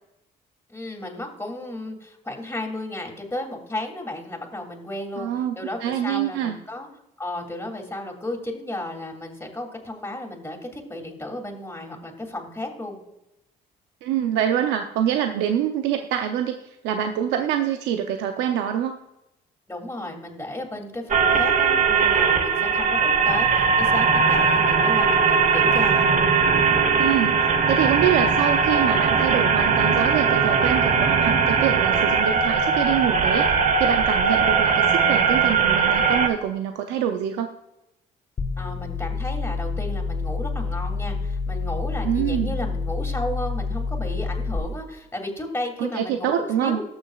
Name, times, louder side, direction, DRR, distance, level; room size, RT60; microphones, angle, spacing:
voice 1, 0.7-5.3 5.6-6.9 7.2-13.0 19.7-26.0 38.6-46.8, left 1 dB, 15° left, 1 dB, 2.7 m, -33 dB
voice 2, 5.2-6.6 14.0-16.6 16.8-19.0 27.0-27.3 27.7-33.5 33.8-37.5 42.0-42.6 45.8-46.8, right 10 dB, 85° right, 6 dB, 0.6 m, -25 dB
sound 1, 21.1-36.3, right 5 dB, 45° right, 1.2 m, -20 dB
sound 2, 38.4-44.6, left 4 dB, 40° left, 1.5 m, -28 dB
19.0 x 6.5 x 2.4 m, 0.90 s
supercardioid pair, 75°, 18 cm